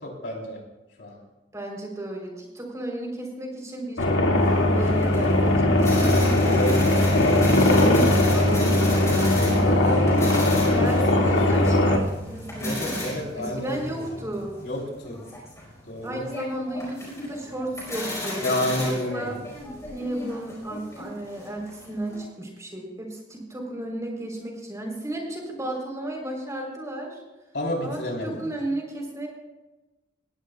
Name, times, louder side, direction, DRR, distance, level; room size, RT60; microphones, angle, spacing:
voice 1, 0.0-0.6 1.0-1.2 6.4-7.1 9.3-9.7 12.6-13.9 14.6-15.2 15.8-16.2 18.4-19.4 27.5-28.5, left 1 dB, 65° left, -1 dB, 4.0 m, -30 dB
voice 2, 1.5-6.4 7.7-10.1 10.7-14.6 16.0-19.4 19.9-27.2 27.8-29.3, right 1 dB, 15° right, 0 dB, 3.8 m, -33 dB
sound 1, 4.0-12.0, left 1 dB, 85° left, 2.2 m, -20 dB
sound 2, 4.4-22.3, left 1 dB, 15° left, 4.7 m, -35 dB
19.5 x 16.0 x 2.4 m, 1.0 s
head